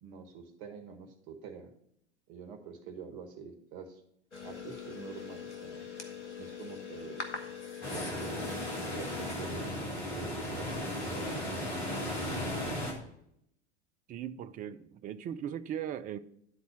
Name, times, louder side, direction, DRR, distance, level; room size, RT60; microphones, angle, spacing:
voice 1, 0.0-1.7 2.3-4.0 4.4-5.9 6.4-7.3 7.9-11.5, right 6 dB, 50° right, 1.6 m, -46 dB
sound 1, 4.3-9.3, left 6 dB, 85° left, 1.2 m, -42 dB
sound 2, 7.8-12.9, left 1 dB, 65° left, 2.9 m, -36 dB
voice 2, 14.1-16.2, right 9 dB, 25° right, 0.5 m, -38 dB
11.0 x 4.1 x 5.9 m
figure-of-eight pair, 85°, 34 cm